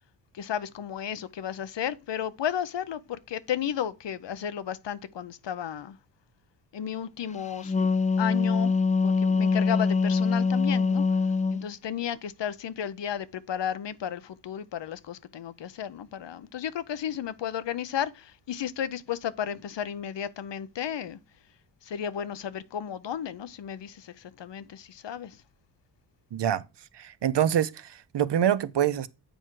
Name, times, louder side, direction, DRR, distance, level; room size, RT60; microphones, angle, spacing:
voice 1, 0.3-6.0 6.7-7.9 8.2-8.7 9.0-11.0 11.5-21.2 21.8-25.4, left 9 dB, 90° left, 0.6 m, -33 dB
Wind instrument woodwind instrument, 7.4-11.6, left 4 dB, 20° left, 0.4 m, -24 dB
voice 2, 26.3-26.6 26.9-29.1, right 10 dB, 80° right, 0.6 m, -25 dB
7.9 x 4.5 x 4.5 m
wide cardioid pair, 55°, 42 cm